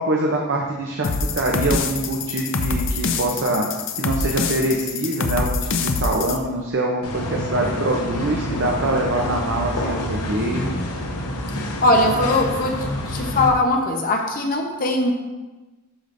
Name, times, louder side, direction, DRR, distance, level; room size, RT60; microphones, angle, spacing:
voice 1, 0.0-3.7 4.0-10.7 11.5-11.6, right 2 dB, 55° right, 0 dB, 0.7 m, -24 dB
sound 1, 1.0-6.4, left 4 dB, 60° left, 0.6 m, -25 dB
sound 2, 7.0-13.5, left 1 dB, 90° left, 1.1 m, -27 dB
voice 2, 11.8-15.1, left 2 dB, 40° left, 2 dB, 0.9 m, -20 dB
12.0 x 5.0 x 2.6 m, 1.2 s
head